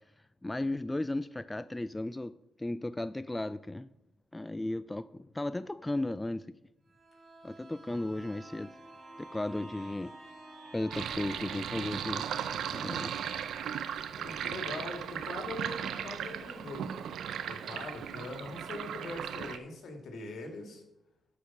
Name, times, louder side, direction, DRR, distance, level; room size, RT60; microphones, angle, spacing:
voice 1, 0.4-2.3 2.6-3.9 4.3-6.5 7.4-8.7 9.2-10.1 10.7-12.2 12.7-13.1, left 1 dB, 15° left, 14 dB, 0.3 m, -35 dB
sound 1, 6.9-16.4 16.8-16.9, right 2 dB, 50° right, 2.0 m, -51 dB
Sink (filling or washing), 10.9-19.6, right 9 dB, 75° right, 0.6 m, -37 dB
voice 2, 14.2-16.9 17.5-20.8, left 2 dB, 70° left, 3 dB, 2.3 m, -42 dB
12.0 x 5.1 x 6.0 m, 0.88 s
supercardioid pair, 60°, 0 cm